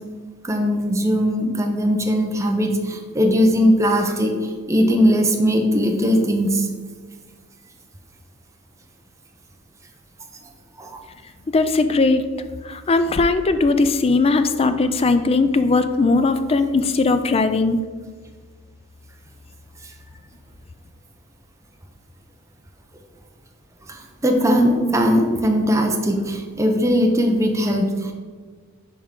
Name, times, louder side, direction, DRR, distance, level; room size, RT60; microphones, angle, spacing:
voice 1, 0.4-6.7 10.8-11.0 23.9-28.1, equal, 15° right, 2 dB, 0.7 m, -19 dB
voice 2, 11.5-12.2 12.6-17.8, left 3 dB, 25° left, 10 dB, 0.4 m, -19 dB
10.5 x 3.6 x 3.7 m, 1.5 s
head